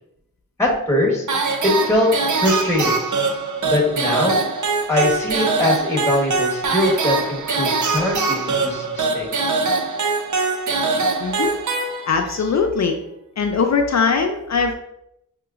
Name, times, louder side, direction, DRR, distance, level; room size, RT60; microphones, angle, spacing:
voice 1, 0.6-1.2 1.6-2.1 2.4-3.0 3.6-4.4 4.9-9.3, left 1 dB, 10° left, -2 dB, 1.1 m, -21 dB
sound 1, 1.3-12.4, right 4 dB, 65° right, 0.6 m, -22 dB
voice 2, 11.2-11.5 12.1-13.0 13.4-14.7, left 5 dB, 60° left, 4 dB, 0.5 m, -20 dB
5.7 x 2.9 x 2.4 m, 0.81 s
wide cardioid pair, 60°, 32 cm